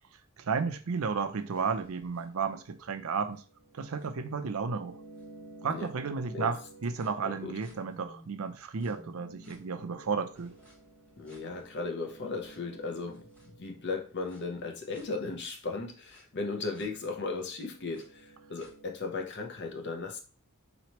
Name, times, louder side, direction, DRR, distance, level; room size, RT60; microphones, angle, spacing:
voice 1, 0.4-3.4 3.7-5.0 5.6-10.5, right 5 dB, 80° right, 0.5 m, -33 dB
sound 1, 1.3-8.2 8.8-14.4 14.9-15.0 16.1-16.2 16.7-16.9 17.4-19.1, right 1 dB, 5° left, 1.3 m, -54 dB
voice 2, 7.2-7.6 11.2-20.2, left 3 dB, 55° left, 0.8 m, -36 dB
4.1 x 3.1 x 2.9 m
head